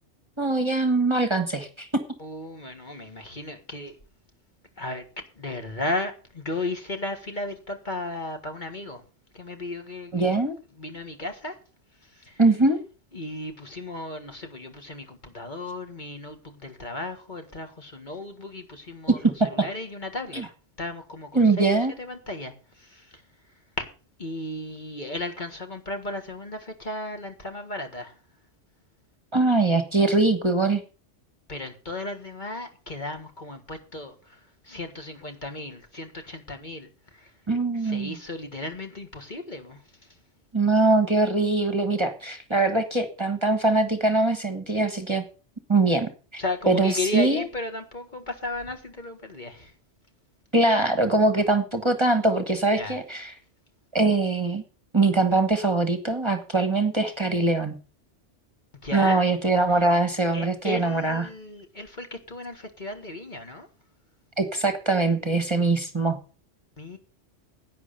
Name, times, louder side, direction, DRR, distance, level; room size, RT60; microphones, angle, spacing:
voice 1, 0.4-1.9 10.1-10.5 12.4-12.8 19.2-19.5 20.3-20.4 21.3-21.9 29.3-30.8 37.5-38.1 40.5-45.2 45.7-47.4 50.5-53.3 53.9-54.6 54.9-57.7 58.9-61.3 64.4-66.2, right 3 dB, 25° right, 1.4 m, -22 dB
voice 2, 2.2-4.0 4.8-5.0 5.4-9.0 9.3-10.4 10.8-11.6 12.0-12.4 13.1-20.4 20.8-23.2 23.8-23.9 24.2-28.2 31.5-37.3 37.8-40.2 46.4-49.7 52.8-53.0 58.8-59.2 59.7-59.9 60.3-63.7 66.8-67.0, left 2 dB, 40° left, 1.8 m, -35 dB
11.0 x 9.0 x 6.8 m
omnidirectional pair, 1.2 m